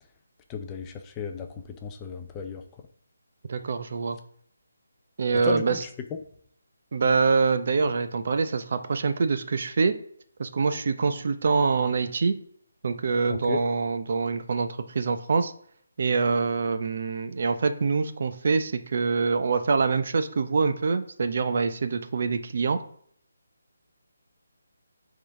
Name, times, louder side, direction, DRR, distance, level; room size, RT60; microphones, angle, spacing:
voice 1, 0.5-2.6 5.4-5.9 13.3-13.6, left 6 dB, 15° left, 5 dB, 0.5 m, -34 dB
voice 2, 3.5-4.2 5.2-5.8 6.9-9.9 10.4-12.3 12.8-14.7 14.9-15.5 16.0-22.8, right 4 dB, 45° right, 9 dB, 0.6 m, -25 dB
10.0 x 3.7 x 3.7 m, 0.63 s
hypercardioid pair, 170°, 0 cm